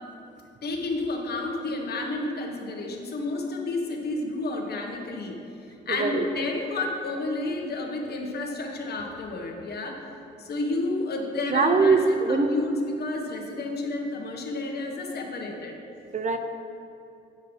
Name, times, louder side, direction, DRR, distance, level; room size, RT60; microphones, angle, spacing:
voice 1, 0.6-5.4 5.8-10.0 10.4-15.8, left 2 dB, 55° left, 2 dB, 1.3 m, -31 dB
voice 2, 5.9-6.3 11.5-12.5 16.1-16.4, right 4 dB, 40° right, 7 dB, 0.6 m, -22 dB
9.5 x 5.5 x 5.2 m, 2.6 s
cardioid pair, 90°, 20 cm